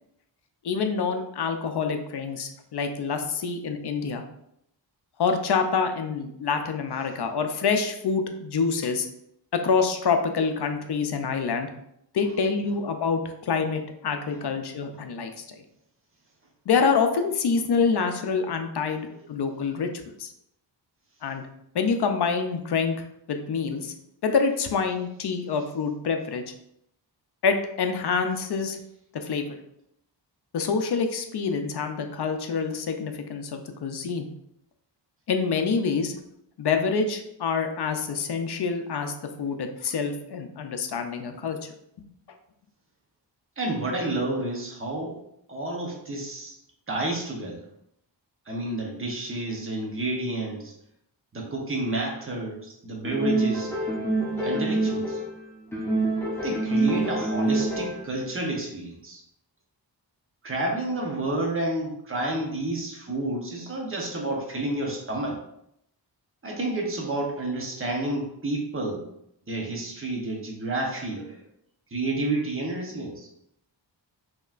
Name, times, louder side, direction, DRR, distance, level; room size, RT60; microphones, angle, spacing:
voice 1, 0.6-4.2 5.2-9.1 9.6-11.7 12.1-15.6 16.7-19.9 20.2-20.3 21.2-21.5 21.7-22.9 23.3-23.9 24.2-26.4 27.4-28.8 29.1-29.6 30.5-34.3 35.3-36.1 36.6-41.7, left 5 dB, 65° left, 6 dB, 0.5 m, -26 dB
voice 2, 43.6-45.2 45.5-46.5 46.9-47.6 48.5-50.7 51.3-53.7 54.4-55.2 56.4-59.2 60.4-65.4 66.4-69.0 69.5-71.4 71.9-73.3, right 2 dB, 30° right, -1 dB, 0.8 m, -30 dB
sound 1, 53.0-55.4 55.7-58.1, right 2 dB, 5° left, 0.9 m, -26 dB
5.3 x 2.9 x 2.4 m, 0.78 s
wide cardioid pair, 155°, 44 cm